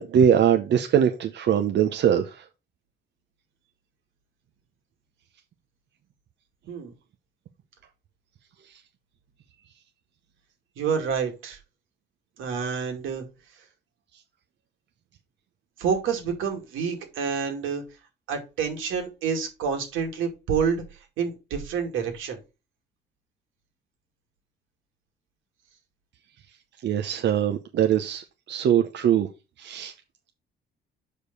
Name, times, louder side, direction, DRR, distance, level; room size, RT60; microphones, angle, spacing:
voice 1, 0.0-2.4 26.8-29.3 29.6-29.9, right 9 dB, 65° right, 0.9 m, -22 dB
voice 2, 10.8-11.6 12.4-13.2 15.8-17.8 18.3-20.8 21.2-22.4, right 6 dB, 90° right, 2.3 m, -28 dB
6.6 x 5.2 x 5.3 m
cardioid pair, 90°, 20 cm